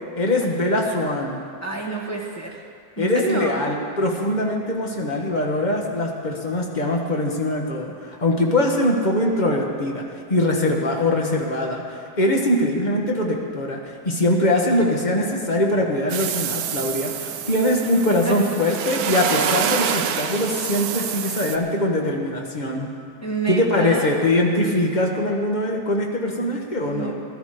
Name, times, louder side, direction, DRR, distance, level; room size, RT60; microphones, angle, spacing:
voice 1, 0.1-1.4 3.0-10.0 10.3-22.9 23.5-27.1, left 1 dB, 25° left, 0 dB, 1.4 m, -22 dB
voice 2, 1.6-2.6 3.0-3.6 14.8-14.9 18.2-18.3 23.2-24.1 26.3-27.1, right 3 dB, 10° left, -3 dB, 1.2 m, -29 dB
sound 1, 16.1-21.6, right 8 dB, 65° right, 1.0 m, -27 dB
16.5 x 12.0 x 5.1 m, 2.3 s
omnidirectional pair, 2.1 m